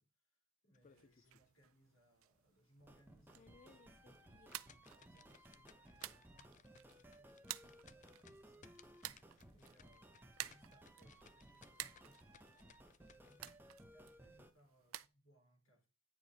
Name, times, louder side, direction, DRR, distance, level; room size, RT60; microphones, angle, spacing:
voice 1, 0.0-8.7 9.5-10.1 10.4-13.5 13.9-15.9, right 1 dB, 80° left, 3.8 m, -72 dB
sound 1, 0.7-1.5 1.9-2.0 2.5-2.6 3.2-13.6, left 7 dB, 35° left, 0.4 m, -66 dB
sound 2, 0.8-15.1, right 14 dB, 85° right, 0.5 m, -54 dB
sound 3, 2.8-14.5, right 1 dB, 10° right, 0.8 m, -61 dB
9.7 x 4.8 x 4.0 m
head